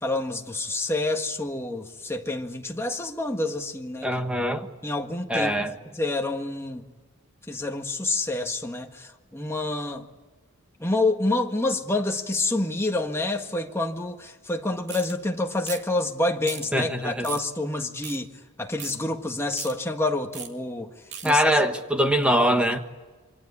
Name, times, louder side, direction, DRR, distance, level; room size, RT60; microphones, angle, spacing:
voice 1, 0.0-4.1 4.8-5.5 6.0-6.8 7.5-10.1 10.8-18.3 18.6-20.9 21.2-21.4, left 2 dB, 10° left, 1.7 m, -28 dB
voice 2, 4.0-4.7 5.3-5.7 16.7-17.3 21.2-22.8, equal, 5° right, 1.4 m, -22 dB
sound 1, 14.9-15.1 15.6-15.9 16.4-16.7 17.2-17.5 18.0-18.2 18.8-19.0 19.5-19.7 20.3-20.5 21.1-21.3, right 7 dB, 55° right, 2.7 m, -36 dB
27.5 x 24.5 x 8.5 m
head